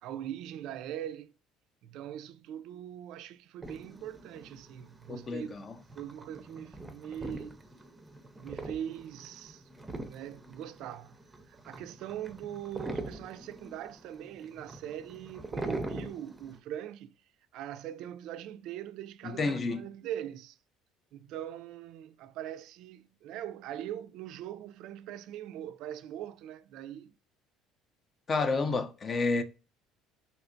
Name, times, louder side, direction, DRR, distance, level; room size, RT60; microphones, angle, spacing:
voice 1, 0.0-1.3 1.8-5.6 6.0-7.6 8.3-9.6 10.0-11.2 11.5-17.2 17.5-20.6 21.1-27.1, right 11 dB, 70° right, 0.3 m, -41 dB
sound 1, 3.6-16.6, right 2 dB, 15° right, 0.5 m, -43 dB
voice 2, 5.1-5.7 19.2-19.8 28.3-29.4, left 3 dB, 35° left, 0.4 m, -30 dB
3.2 x 2.8 x 2.5 m
supercardioid pair, 95°, 0 cm